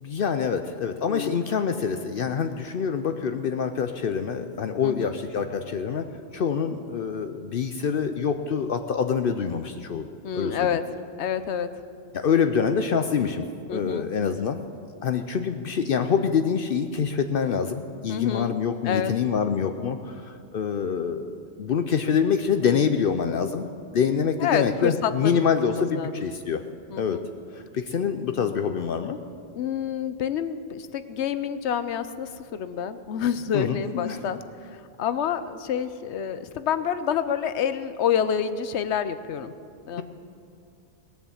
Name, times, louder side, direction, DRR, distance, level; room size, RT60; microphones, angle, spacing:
voice 1, 0.0-6.1 6.3-10.0 10.3-10.8 12.1-14.6 15.0-21.3 21.6-23.7 23.9-26.6 26.9-27.2 27.5-29.2 33.5-34.2, left 6 dB, 60° left, 8 dB, 0.7 m, -26 dB
voice 2, 1.1-1.4 4.8-5.2 10.2-10.8 11.2-11.7 13.7-14.1 18.1-18.6 18.8-19.1 24.4-25.5 25.7-26.2 26.9-27.3 29.6-34.4 35.0-39.5 39.9-40.0, left 8 dB, 85° left, 12 dB, 1.0 m, -28 dB
19.0 x 7.1 x 7.2 m, 2.3 s
omnidirectional pair, 1.1 m